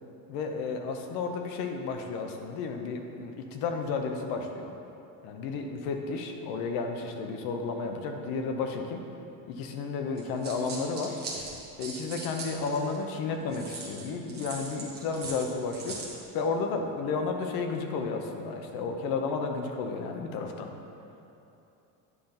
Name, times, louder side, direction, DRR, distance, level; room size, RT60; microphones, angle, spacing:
voice 1, 0.3-4.7 5.2-9.0 9.5-11.2 11.8-16.0 16.3-20.7, left 4 dB, 65° left, 4 dB, 0.9 m, -32 dB
sound 1, 10.2-13.0 13.5-16.2, right 3 dB, 25° right, 1.1 m, -40 dB
9.5 x 3.9 x 5.7 m, 2.8 s
cardioid pair, 175°, 39 cm